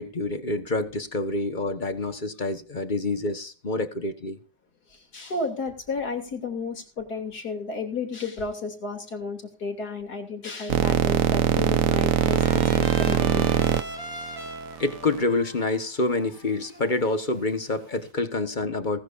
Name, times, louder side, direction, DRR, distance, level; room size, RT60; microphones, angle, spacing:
voice 1, 0.0-4.4 14.8-19.0, left 2 dB, 30° left, 1.3 m, -27 dB
voice 2, 4.9-13.5, left 3 dB, 65° left, 3.4 m, -33 dB
sound 1, 10.7-15.2, right 9 dB, 60° right, 1.1 m, -22 dB
Trumpet, 11.6-17.4, right 1 dB, 20° right, 3.9 m, -41 dB
19.0 x 12.5 x 2.6 m
omnidirectional pair, 1.8 m